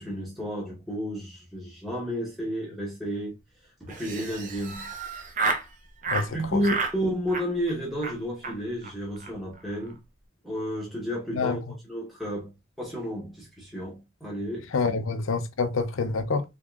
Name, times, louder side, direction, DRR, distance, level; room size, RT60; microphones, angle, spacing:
voice 1, 0.0-3.3 3.8-4.9 6.3-10.0 10.4-11.6 11.9-15.0, equal, ahead, 1.0 m, -32 dB
Laughter, 3.9-5.7 6.0-6.3 6.6-7.0 7.3-7.7 8.0-8.2 8.4-8.5 8.8-8.9 9.2-9.3 9.6-9.9, right 4 dB, 35° right, 0.6 m, -31 dB
voice 2, 6.1-6.6 11.3-11.6 14.7-16.4, left 4 dB, 75° left, 0.5 m, -27 dB
3.6 x 3.5 x 2.3 m
head